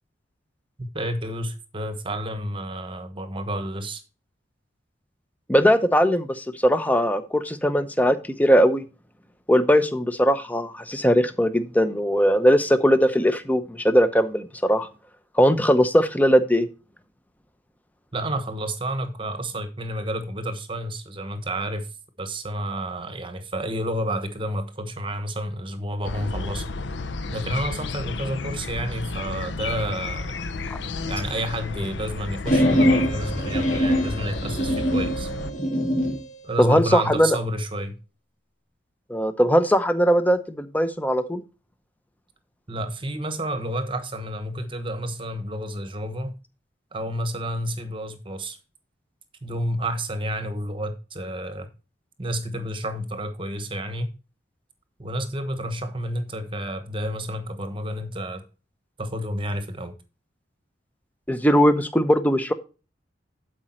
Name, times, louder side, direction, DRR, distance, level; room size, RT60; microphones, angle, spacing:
voice 1, 0.8-4.0 18.1-21.9 22.2-26.7 27.3-30.3 31.0-35.3 36.4-38.0 42.7-46.3 46.9-48.6 49.4-51.7 52.2-54.1 55.0-58.4 59.0-59.9, right 1 dB, 25° right, 1.1 m, -30 dB
voice 2, 5.5-8.8 9.5-14.9 15.3-16.7 36.6-37.4 39.1-41.4 61.3-62.5, equal, 10° left, 0.7 m, -20 dB
sound 1, 26.0-35.5, left 3 dB, 70° left, 0.6 m, -32 dB
sound 2, 32.5-36.2, equal, 40° left, 2.3 m, -23 dB
11.5 x 5.0 x 4.3 m
head